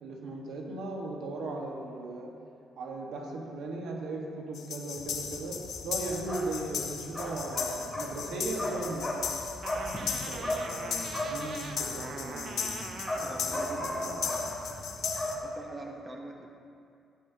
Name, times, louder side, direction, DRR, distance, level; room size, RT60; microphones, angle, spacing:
voice 1, 0.0-2.3 2.8-9.1 10.3-12.9, right 2 dB, 80° right, 0 dB, 1.4 m, -37 dB
sound 1, 4.5-15.3, left 7 dB, 70° left, 0.8 m, -37 dB
sound 2, 5.0-15.3, left 1 dB, 5° left, 2.5 m, -37 dB
sound 3, 9.6-14.6, right 5 dB, 55° right, 0.6 m, -43 dB
voice 2, 13.1-14.8 15.4-16.5, right 2 dB, 25° right, 2 dB, 0.9 m, -45 dB
12.5 x 9.4 x 2.8 m, 2.5 s
cardioid pair, 90°, 0 cm